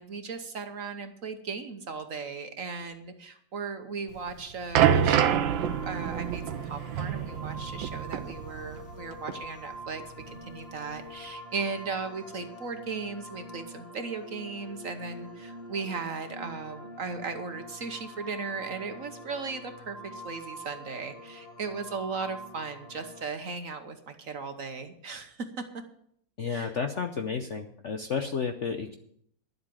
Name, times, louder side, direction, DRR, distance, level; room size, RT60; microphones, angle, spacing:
voice 1, 0.0-25.5 26.5-26.7, right 4 dB, 50° right, 7 dB, 1.3 m, -37 dB
sound 1, 4.2-9.0 9.3-9.5 10.2-10.3, right 9 dB, 85° right, 1.5 m, -27 dB
sound 2, 4.8-23.2, equal, 35° left, 1.8 m, -45 dB
voice 2, 26.4-29.0, left 6 dB, 55° left, 6 dB, 0.8 m, -32 dB
11.5 x 8.1 x 7.5 m, 0.69 s
omnidirectional pair, 2.1 m